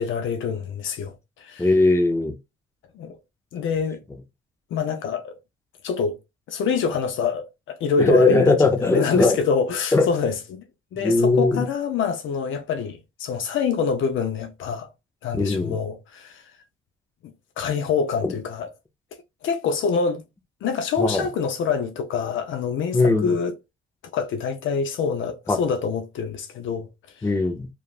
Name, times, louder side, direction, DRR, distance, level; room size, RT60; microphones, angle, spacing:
voice 1, 0.0-1.7 2.9-3.2 3.5-4.0 4.7-5.4 5.8-6.2 6.5-10.6 10.9-14.9 15.2-16.4 17.6-18.7 19.4-20.2 20.6-23.5 24.1-27.3, left 5 dB, 70° left, 0.5 m, -26 dB
voice 2, 1.6-2.4 8.0-9.4 9.9-10.1 11.0-11.7 15.3-15.8 18.2-18.3 21.0-21.3 22.9-23.3 25.5-25.6 27.2-27.7, left 3 dB, 15° left, 0.5 m, -19 dB
2.9 x 2.3 x 2.3 m
cardioid pair, 125°, 21 cm